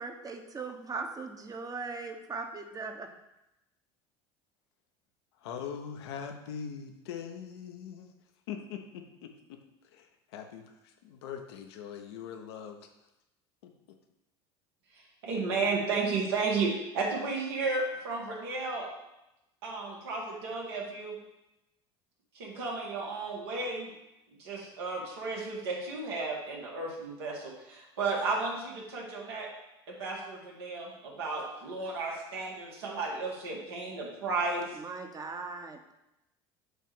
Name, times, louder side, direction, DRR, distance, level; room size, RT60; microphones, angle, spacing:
voice 1, 0.0-3.1 34.7-35.9, right 4 dB, 25° right, 6 dB, 1.0 m, -39 dB
voice 2, 5.4-8.1 8.5-9.6 9.9-12.8 13.6-14.0, left 7 dB, 80° left, 5 dB, 0.9 m, -42 dB
voice 3, 15.2-18.9 19.6-21.2 22.3-23.9 24.4-29.5 29.9-34.7, right 3 dB, 80° right, -2 dB, 2.0 m, -33 dB
8.1 x 2.7 x 6.0 m, 0.92 s
hypercardioid pair, 80°, 13 cm